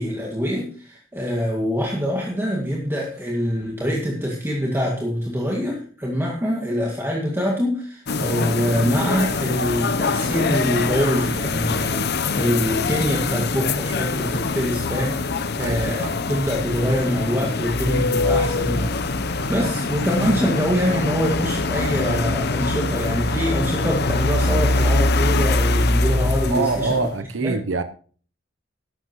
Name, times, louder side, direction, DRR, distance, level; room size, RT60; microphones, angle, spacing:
voice 1, 0.0-27.1 27.4-27.6, equal, 15° right, -2 dB, 2.1 m, -24 dB
sound 1, 8.1-27.1, left 3 dB, 60° left, 0.8 m, -23 dB
voice 2, 15.6-16.1 26.5-27.8, right 4 dB, 85° right, 9 dB, 0.8 m, -25 dB
13.5 x 12.0 x 3.1 m, 0.42 s
head